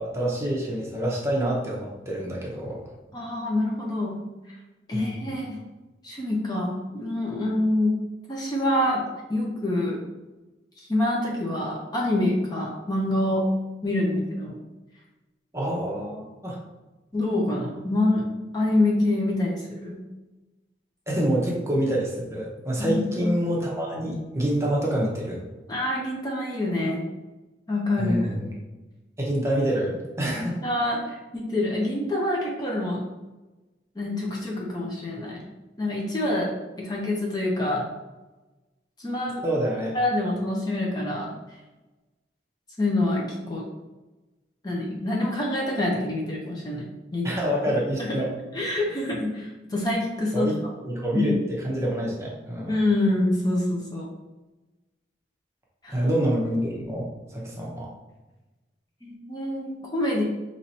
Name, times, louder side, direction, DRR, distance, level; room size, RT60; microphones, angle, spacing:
voice 1, 0.0-2.8 4.9-5.3 15.5-16.6 21.1-25.4 28.0-28.5 29.2-30.6 39.4-39.9 47.2-48.3 50.3-50.6 50.8-52.8 55.9-57.9, right 1 dB, 15° right, -3 dB, 0.8 m, -27 dB
voice 2, 3.1-4.2 4.9-5.6 6.0-7.9 8.3-9.0 9.3-10.0 10.8-13.5 13.8-14.6 17.1-18.2 18.5-20.0 22.8-23.3 25.7-27.0 27.7-28.2 30.6-33.0 34.0-35.4 35.8-36.5 36.8-37.8 39.0-39.4 39.9-41.3 42.8-43.6 44.6-46.8 47.1-47.4 48.0-48.2 48.5-50.5 51.1-51.3 52.7-54.1 55.8-56.1 59.0-60.2, left 1 dB, 20° left, -3 dB, 0.6 m, -26 dB
5.7 x 3.0 x 2.8 m, 1.1 s
head